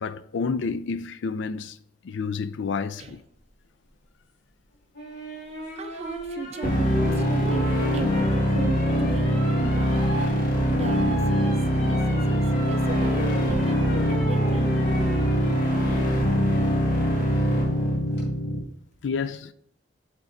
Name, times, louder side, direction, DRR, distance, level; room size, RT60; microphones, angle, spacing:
voice 1, 0.0-1.7 2.1-3.2 19.0-19.5, left 5 dB, 90° left, 0.4 m, -29 dB
sound 1, 4.9-16.1 17.8-18.2, equal, 65° left, 2.8 m, -36 dB
voice 2, 5.8-7.7 7.9-10.2 10.7-12.4 12.7-14.9, right 3 dB, 35° right, 0.6 m, -37 dB
sound 2, 6.6-18.6, equal, 50° left, 1.6 m, -23 dB
8.2 x 5.9 x 2.6 m
head